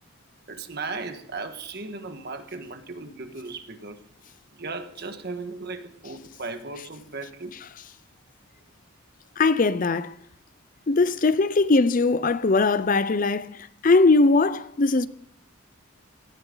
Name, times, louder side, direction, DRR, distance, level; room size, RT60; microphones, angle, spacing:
voice 1, 0.5-4.0 4.5-7.6, right 3 dB, 50° right, 1.5 m, -36 dB
voice 2, 9.4-10.1 10.9-13.5 13.8-15.1, left 3 dB, 40° left, 0.5 m, -20 dB
18.0 x 14.0 x 3.9 m
head